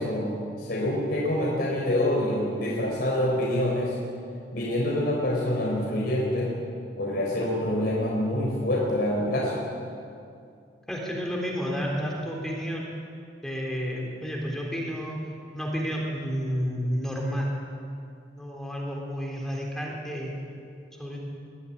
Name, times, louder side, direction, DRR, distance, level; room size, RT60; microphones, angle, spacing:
voice 1, 0.0-4.0 4.5-6.5 7.0-9.6, left 1 dB, 60° left, -3 dB, 3.9 m, -26 dB
voice 2, 10.9-12.9 13.4-15.2 15.5-17.5 18.4-20.3 21.0-21.2, equal, 5° left, -2 dB, 3.5 m, -31 dB
22.0 x 14.0 x 9.9 m, 2.4 s
head